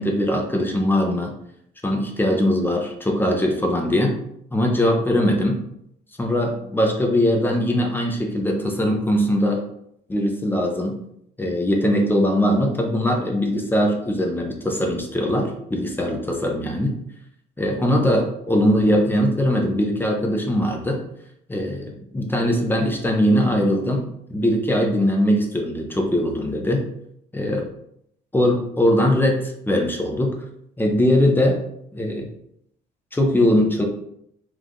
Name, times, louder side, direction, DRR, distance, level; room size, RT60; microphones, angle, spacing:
voice 1, 0.0-1.3 1.8-4.2 4.5-5.6 6.2-9.6 10.1-11.0 11.4-16.9 17.6-21.0 21.5-26.8 27.3-27.7 28.3-30.4 30.8-31.6 31.9-32.3 33.1-33.8, equal, 10° left, 1 dB, 0.8 m, -21 dB
4.7 x 2.5 x 3.7 m, 0.74 s
cardioid pair, 110°, 17 cm